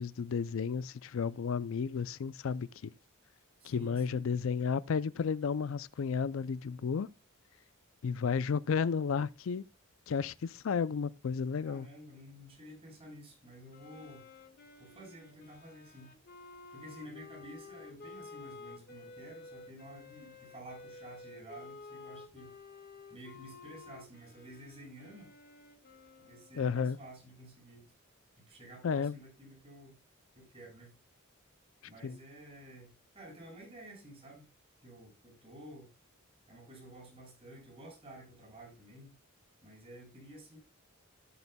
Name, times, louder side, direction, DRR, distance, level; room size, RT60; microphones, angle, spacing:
voice 1, 0.0-2.9 3.6-7.1 8.0-9.6 10.1-11.9 26.6-27.0 28.8-29.1 32.0-32.2, left 6 dB, 65° left, 0.4 m, -32 dB
voice 2, 3.6-4.2 11.6-14.3 14.8-16.1 16.7-22.5 23.1-25.3 26.2-27.9 28.5-30.0 30.3-30.9 31.8-34.4 34.8-35.9 36.5-39.2 39.6-40.6, right 1 dB, 30° right, 6.3 m, -51 dB
Wind instrument woodwind instrument, 13.7-27.1, left 3 dB, 45° left, 1.5 m, -52 dB
16.5 x 6.9 x 2.2 m
head